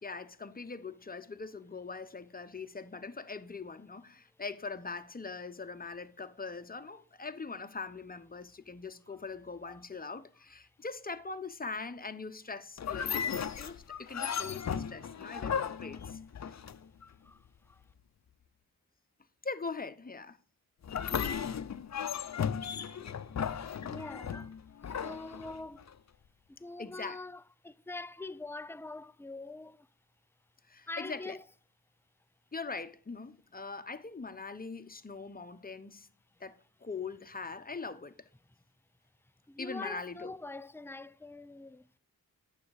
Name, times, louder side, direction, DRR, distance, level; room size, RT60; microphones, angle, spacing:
voice 1, 0.0-13.3 13.6-16.2 19.4-20.4 26.8-27.2 30.7-31.4 32.5-36.1 36.4-38.3 39.6-40.3, left 4 dB, 25° left, 0.9 m, -42 dB
sound 1, 12.8-17.1 20.8-25.9, left 7 dB, 50° left, 0.7 m, -36 dB
voice 2, 17.2-17.8 23.2-23.3 23.8-24.5 24.9-25.9 26.5-29.9 30.9-31.4 39.5-42.0, left 2 dB, 5° left, 0.4 m, -44 dB
9.4 x 7.7 x 4.8 m
cardioid pair, 55°, 35 cm